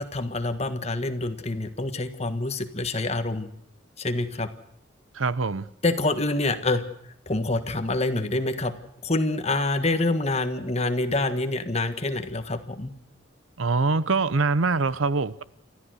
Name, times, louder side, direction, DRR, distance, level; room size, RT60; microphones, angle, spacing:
voice 1, 0.0-3.5 4.0-4.5 5.8-6.8 7.3-8.7 9.0-12.9, left 2 dB, 30° left, 1.5 m, -26 dB
voice 2, 5.1-5.7 13.6-15.4, right 3 dB, 75° right, 0.8 m, -24 dB
29.5 x 14.0 x 6.4 m
head